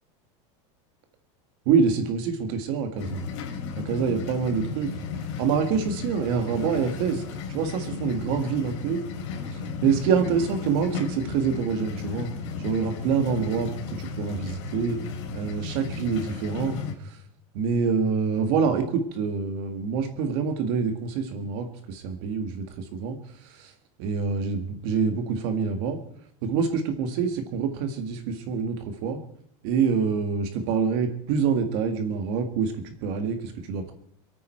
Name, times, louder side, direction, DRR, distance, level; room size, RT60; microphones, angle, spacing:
voice 1, 1.7-3.2 3.8-4.9 5.4-7.2 7.5-9.0 9.5-12.3 12.6-15.0 15.3-17.2 17.5-23.7 24.0-26.0 26.4-29.2 29.6-32.7 33.0-33.9, right 6 dB, 55° right, 7 dB, 1.9 m, -26 dB
sound 1, 3.0-16.9, left 5 dB, 65° left, 3.5 m, -34 dB
27.5 x 9.3 x 4.5 m, 0.72 s
supercardioid pair, 170°, 17 cm